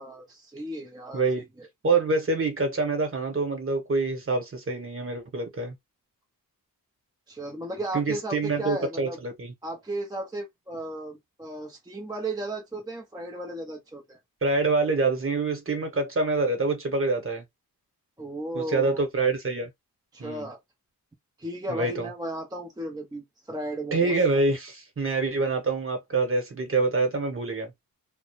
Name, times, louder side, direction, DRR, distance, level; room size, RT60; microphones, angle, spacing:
voice 1, 0.0-1.7 7.3-9.2 9.6-14.2 18.2-19.0 20.1-20.6 21.4-24.1, right 1 dB, 10° right, 0.4 m, -35 dB
voice 2, 1.8-5.7 7.9-9.5 14.4-17.4 18.5-19.7 20.2-20.5 21.7-22.1 23.9-27.7, right 3 dB, 35° right, 1.0 m, -26 dB
2.3 x 2.1 x 2.9 m
wide cardioid pair, 95°, 36 cm